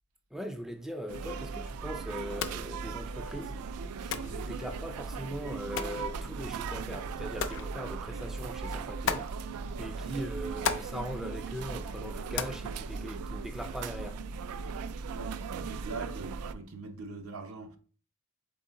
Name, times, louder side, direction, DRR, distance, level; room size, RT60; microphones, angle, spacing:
voice 1, 0.3-14.2, equal, ahead, 0.4 m, -40 dB
sound 1, 1.1-16.5, right 5 dB, 85° right, 0.3 m, -38 dB
sound 2, 2.2-13.7, left 6 dB, 60° left, 0.4 m, -40 dB
voice 2, 15.1-17.8, right 3 dB, 65° right, 0.7 m, -42 dB
3.8 x 3.8 x 3.7 m
head